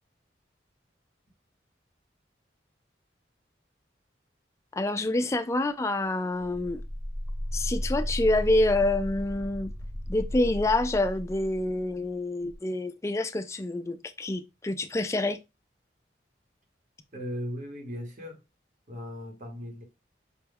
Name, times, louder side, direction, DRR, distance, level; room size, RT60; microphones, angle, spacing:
voice 1, 4.7-6.8 7.5-9.7 10.1-15.4, left 2 dB, 15° left, 0.3 m, -27 dB
sound 1, 6.4-12.0 12.4-12.6, equal, 5° right, 0.7 m, -34 dB
voice 2, 17.1-18.4 18.9-19.8, equal, 40° right, 1.0 m, -37 dB
5.1 x 2.3 x 3.4 m
head